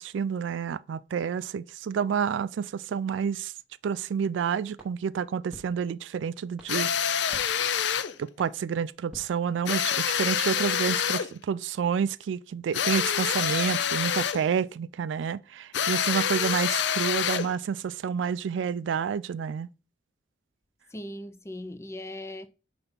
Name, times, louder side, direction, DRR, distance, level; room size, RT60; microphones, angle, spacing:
voice 1, 0.0-3.5 3.8-7.2 8.2-19.7, right 7 dB, 85° right, 0.3 m, -29 dB
sound 1, 4.7-10.1, equal, 5° right, 1.1 m, -54 dB
sound 2, 6.7-8.1 9.7-11.3 12.7-14.5 15.7-17.6, left 8 dB, 70° left, 0.5 m, -27 dB
voice 2, 20.9-22.5, left 1 dB, 15° left, 0.4 m, -39 dB
5.7 x 3.4 x 5.2 m
head